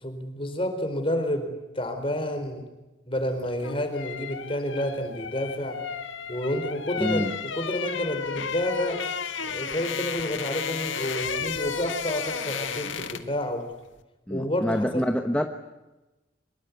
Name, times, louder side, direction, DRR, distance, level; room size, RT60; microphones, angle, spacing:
voice 1, 0.0-2.6 3.1-5.8 6.3-9.0 9.4-13.6 14.3-15.1, left 1 dB, 30° left, 6 dB, 4.5 m, -29 dB
sound 1, 3.4-13.4 13.7-13.9, left 6 dB, 85° left, 1.7 m, -33 dB
voice 2, 7.0-7.3 14.3-15.5, equal, 5° left, 5 dB, 1.1 m, -26 dB
25.0 x 22.0 x 9.5 m, 1.0 s
head